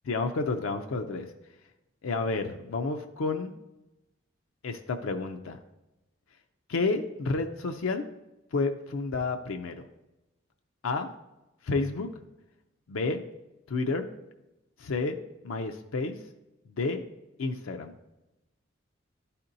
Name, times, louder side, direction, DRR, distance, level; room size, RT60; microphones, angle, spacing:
voice 1, 0.1-1.3 2.0-3.5 4.6-5.6 6.7-8.0 8.5-9.8 10.8-11.1 11.6-12.1 12.9-13.2 13.7-14.1 14.8-15.2 15.4-16.2 16.8-17.0 17.4-17.9, left 3 dB, 85° left, 5 dB, 0.5 m, -30 dB
11.5 x 4.2 x 2.6 m, 0.97 s
head